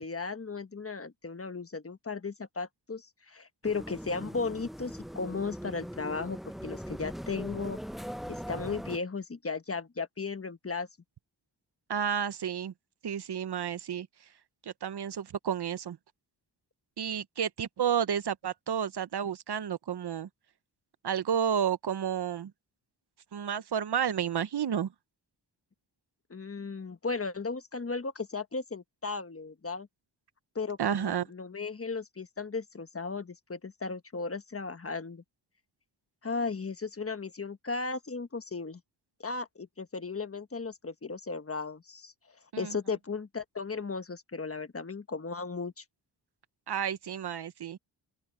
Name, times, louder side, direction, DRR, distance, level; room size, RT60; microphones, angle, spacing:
voice 1, 0.0-7.8 8.3-10.9 26.3-29.9 30.5-35.2 36.2-38.8 39.2-42.1 42.6-45.8, left 4 dB, 30° left, 1.3 m, -36 dB
sound 1, 3.6-9.0, equal, ahead, 0.6 m, -40 dB
voice 2, 11.9-12.7 13.0-14.1 14.6-16.0 17.0-20.3 21.0-22.5 23.3-24.9 30.8-31.3 42.5-42.8 46.7-47.8, right 8 dB, 65° right, 0.9 m, -31 dB
open air
cardioid pair, 70°, 43 cm